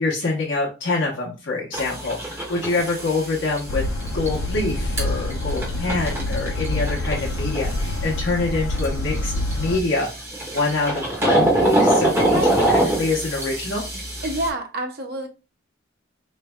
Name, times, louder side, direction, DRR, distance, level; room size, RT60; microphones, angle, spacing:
voice 1, 0.0-3.8 4.1-10.1 10.5-13.8, left 3 dB, 65° left, 1.0 m, -25 dB
sound 1, 1.7-14.5, right 1 dB, 10° right, 1.1 m, -25 dB
sound 2, 3.7-9.8, left 2 dB, 80° left, 0.5 m, -26 dB
voice 2, 12.2-12.6 13.9-15.3, right 1 dB, 50° right, 0.8 m, -28 dB
4.3 x 3.2 x 2.2 m
head